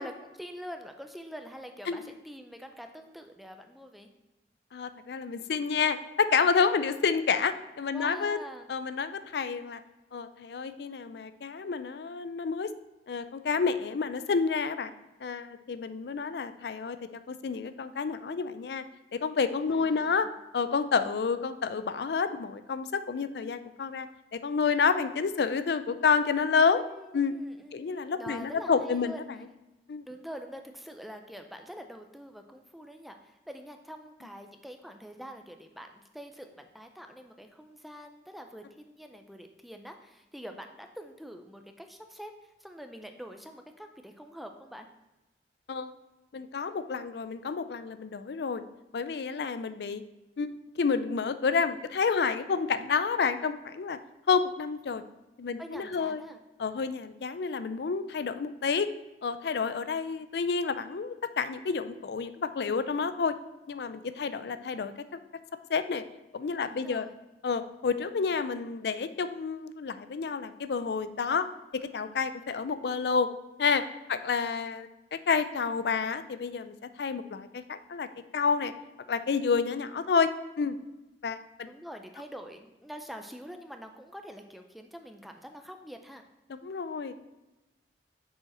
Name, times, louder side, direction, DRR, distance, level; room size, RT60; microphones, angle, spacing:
voice 1, 0.0-4.1 6.6-7.0 7.9-8.7 19.7-20.3 26.6-29.2 30.0-44.9 49.4-49.5 55.6-56.4 64.2-64.5 66.6-67.1 74.1-74.5 81.7-86.2, equal, ahead, 5 dB, 0.4 m, -45 dB
voice 2, 4.7-8.4 8.7-9.8 10.1-12.7 13.1-14.9 15.2-17.0 17.3-18.8 19.1-20.3 20.5-24.1 24.3-26.8 27.1-27.3 27.7-29.2 29.9-30.0 45.7-45.9 46.3-48.6 48.9-50.0 50.4-50.5 50.8-54.0 54.3-55.0 55.4-56.2 56.6-58.9 59.2-63.3 63.7-65.2 65.7-66.0 66.3-67.1 67.4-71.5 71.7-73.3 73.6-73.8 74.1-78.1 78.3-78.7 79.1-80.3 80.6-80.8 81.2-81.7 86.6-87.3, left 5 dB, 65° left, 12 dB, 0.4 m, -29 dB
6.3 x 5.0 x 4.2 m, 1.0 s
head